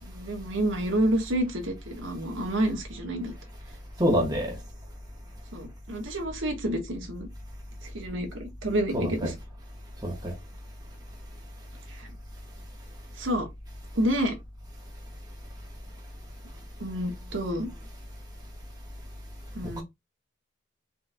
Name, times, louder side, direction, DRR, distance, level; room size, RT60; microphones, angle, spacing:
voice 1, 0.0-3.3 5.5-7.3 7.8-9.3 11.9-12.1 13.2-13.5 13.9-14.4 16.8-17.7 19.5-19.8, right 1 dB, 75° right, 1.4 m, -29 dB
voice 2, 4.0-4.5 8.9-9.3 10.0-10.3, equal, 20° right, 1.3 m, -26 dB
4.4 x 3.9 x 2.2 m
head